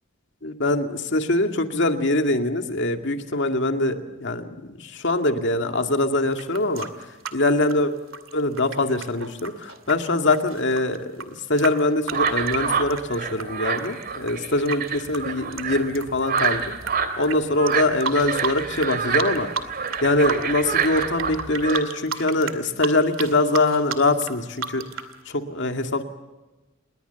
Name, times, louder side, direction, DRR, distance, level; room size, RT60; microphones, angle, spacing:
voice 1, 0.4-6.9 7.3-7.9 8.3-16.6 17.2-19.5 20.0-26.0, left 2 dB, 60° left, 6 dB, 2.2 m, -23 dB
sound 1, 6.3-13.5 13.8-16.9 17.2-17.4 17.7-18.9 19.2-20.0 20.2-25.1, right 5 dB, 80° right, 2.3 m, -32 dB
sound 2, 12.1-21.8, right 6 dB, 50° right, 2.7 m, -27 dB
28.0 x 21.5 x 7.0 m, 1.1 s
head